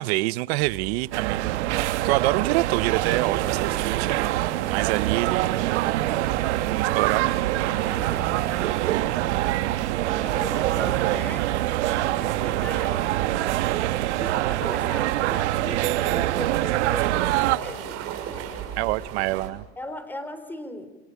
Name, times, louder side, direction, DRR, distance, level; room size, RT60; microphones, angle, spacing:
voice 1, 0.0-5.9 6.7-7.4 18.8-19.6, right 19 dB, 65° right, 0.9 m, -27 dB
sound 1, 0.6-19.5, right 8 dB, 45° right, 6.5 m, -38 dB
sound 2, 1.1-17.6, right 15 dB, 90° right, 1.5 m, -25 dB
voice 2, 10.1-13.2 14.2-18.5 18.8-18.9 19.8-20.9, left 1 dB, 5° left, 3.8 m, -38 dB
29.0 x 28.0 x 7.3 m
supercardioid pair, 150°, 34 cm